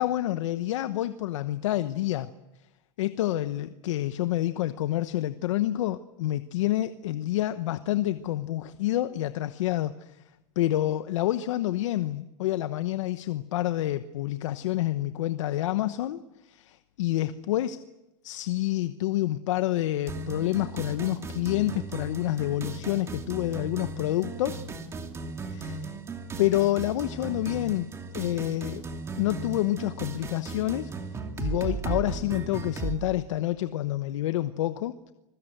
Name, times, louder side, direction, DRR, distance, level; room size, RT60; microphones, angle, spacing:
voice 1, 0.0-2.3 3.0-10.2 10.6-17.8 18.2-24.6 25.5-25.9 26.4-28.8 29.2-30.9 31.4-35.1, left 14 dB, 75° left, 11 dB, 1.0 m, -28 dB
sound 1, 20.1-33.0, right 4 dB, 15° right, 2.6 m, -36 dB
26.5 x 22.0 x 8.0 m, 0.99 s
supercardioid pair, 145°, 16 cm